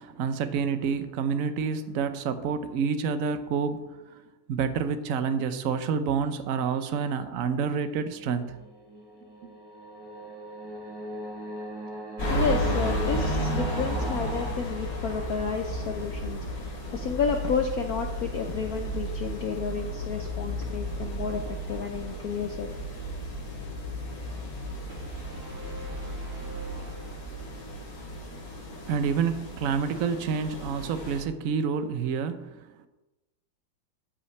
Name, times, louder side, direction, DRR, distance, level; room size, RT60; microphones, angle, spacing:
voice 1, 0.0-4.2 4.5-8.6 28.8-32.7, right 6 dB, 70° right, 10 dB, 0.7 m, -28 dB
sound 1, 7.8-14.5, equal, 20° right, 0.8 m, -39 dB
sound 2, 12.2-31.2, equal, 40° left, 3.9 m, -33 dB
voice 2, 12.3-22.7, left 6 dB, 70° left, 4 dB, 0.9 m, -31 dB
sound 3, 24.9-27.8, equal, 35° right, 2.7 m, -45 dB
13.0 x 8.3 x 3.2 m, 1.0 s
omnidirectional pair, 2.3 m